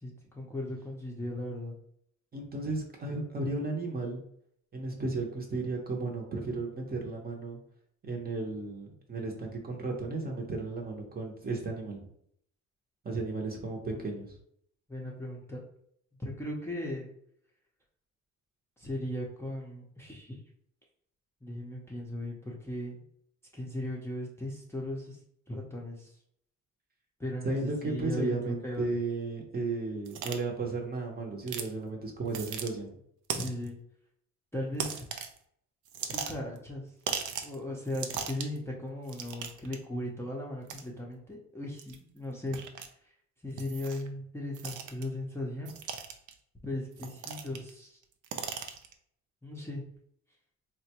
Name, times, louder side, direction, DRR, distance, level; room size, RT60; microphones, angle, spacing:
voice 1, 0.0-1.7 13.9-14.1 14.9-15.6 16.2-17.1 18.8-20.4 21.4-23.0 23.5-25.2 25.5-26.1 27.2-28.9 33.3-33.8 34.5-35.0 36.1-36.9 37.4-42.6 43.4-45.7 46.6-48.0 49.4-49.8, left 1 dB, 10° left, -3 dB, 0.6 m, -37 dB
voice 2, 2.3-4.2 4.7-7.6 8.0-12.0 13.0-14.3 27.4-32.9, right 3 dB, 30° right, 1 dB, 0.7 m, -34 dB
sound 1, 30.1-30.4 31.5-31.7 32.3-32.7 33.3-33.7 34.8-35.4 35.9-36.6 37.1-37.6 37.9-38.6 39.1-39.8 40.7-40.8 41.8-42.0 42.5-42.9 43.6-44.1 44.5-45.0 45.7-46.3 47.0-47.7 48.0-48.9, right 7 dB, 75° right, 0.5 m, -37 dB
3.8 x 2.2 x 2.8 m, 0.68 s
cardioid pair, 120°, 31 cm